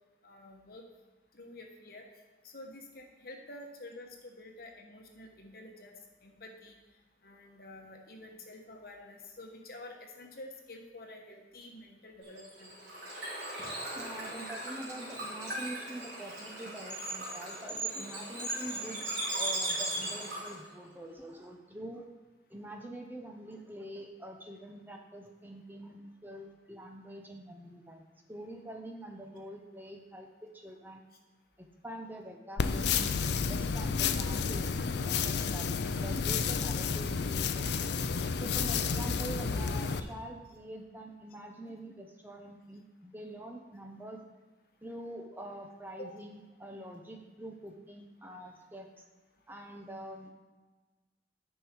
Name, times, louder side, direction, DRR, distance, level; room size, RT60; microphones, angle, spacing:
voice 1, 0.2-0.8 1.3-2.0 2.4-5.9 6.2-6.8 7.2-12.7 21.1-21.2 46.0-46.1, left 1 dB, 55° left, 2 dB, 1.2 m, -49 dB
Bird / Water, 12.2-20.7, right 1 dB, 65° right, 3.1 m, -39 dB
voice 2, 13.9-22.1 22.5-28.0 28.3-31.0 31.6-37.8 38.4-44.2 44.8-49.1 49.5-50.3, right 1 dB, 10° right, 3 dB, 0.7 m, -45 dB
sound 1, 16.9-20.5, right 2 dB, 20° left, 1.0 m, -38 dB
sound 2, 32.6-40.0, left 5 dB, 70° left, 0.5 m, -31 dB
9.7 x 5.5 x 4.5 m, 1.3 s
head